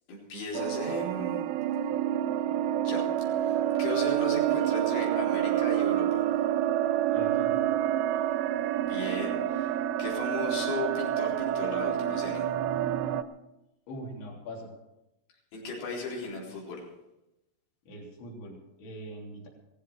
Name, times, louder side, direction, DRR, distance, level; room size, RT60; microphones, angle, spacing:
voice 1, 0.1-1.4 2.5-3.0 3.4-6.2 8.8-9.7 10.0-12.5 15.5-16.8, left 3 dB, 80° left, -4 dB, 6.7 m, -36 dB
sound 1, 0.5-13.2, right 11 dB, 85° right, 2.4 m, -28 dB
voice 2, 7.1-7.7 13.9-14.7 17.9-19.5, equal, 65° left, -2 dB, 5.5 m, -42 dB
17.0 x 14.5 x 4.8 m, 0.92 s
omnidirectional pair, 5.7 m